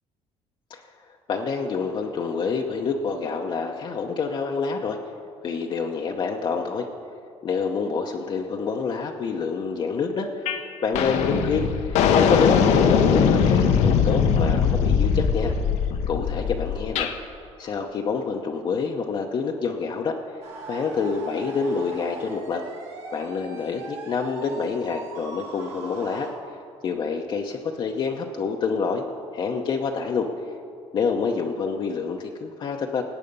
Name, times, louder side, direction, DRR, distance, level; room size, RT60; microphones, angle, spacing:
voice 1, 1.3-5.0 5.4-6.9 7.4-15.5 16.1-17.1 17.6-20.2 20.7-22.6 23.1-26.3 26.8-29.0 29.3-30.3 30.9-33.0, left 5 dB, 45° left, 2 dB, 0.8 m, -27 dB
sound 1, 10.5-10.6 10.9-17.1, left 6 dB, 80° left, 0.9 m, -21 dB
sound 2, 20.4-26.3, right 3 dB, 70° right, 3.3 m, -39 dB
18.0 x 8.3 x 5.4 m, 2.5 s
cardioid pair, 120°, 11 cm